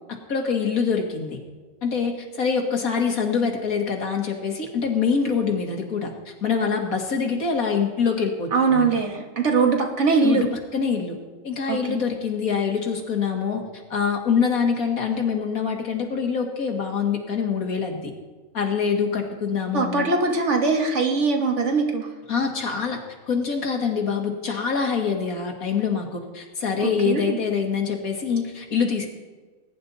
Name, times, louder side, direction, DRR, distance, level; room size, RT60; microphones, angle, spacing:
voice 1, 0.3-1.4 1.8-8.8 10.2-10.5 10.7-11.2 11.4-13.6 13.9-18.1 18.5-20.1 22.3-23.0 23.3-29.1, left 6 dB, 75° left, 2 dB, 2.3 m, -25 dB
voice 2, 8.5-10.5 11.7-12.0 19.7-22.1 26.8-27.4, right 4 dB, 55° right, 2 dB, 1.9 m, -22 dB
20.0 x 9.9 x 4.1 m, 1.3 s
omnidirectional pair, 1.5 m